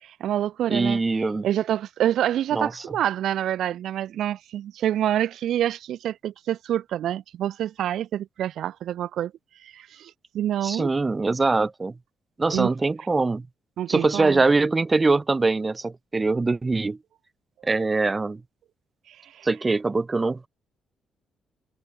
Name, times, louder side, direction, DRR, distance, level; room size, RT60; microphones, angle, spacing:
voice 1, 0.0-9.3 9.6-10.9 12.5-12.7 13.8-14.4 19.1-19.5, right 11 dB, 75° right, 0.5 m, -27 dB
voice 2, 0.7-1.5 2.5-2.7 10.6-11.9 12.4-13.5 13.9-17.0 17.6-18.4 19.4-20.5, right 3 dB, 25° right, 1.0 m, -23 dB
cardioid pair, 90°, 0 cm